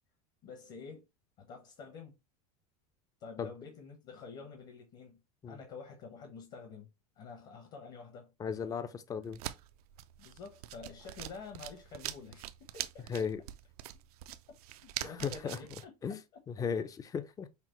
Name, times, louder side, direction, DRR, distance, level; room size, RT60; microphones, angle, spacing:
voice 1, 0.4-1.1 1.4-2.1 3.2-5.2 5.5-6.9 7.2-8.3 10.2-13.1 14.8-16.4, left 5 dB, 45° left, 1.1 m, -48 dB
voice 2, 8.4-9.4 13.1-13.4 15.0-15.6 16.0-16.2 16.5-17.5, left 6 dB, 20° left, 0.4 m, -36 dB
sound 1, 9.2-15.8, right 14 dB, 80° right, 0.4 m, -44 dB
5.7 x 2.0 x 3.0 m
supercardioid pair, 115°, 19 cm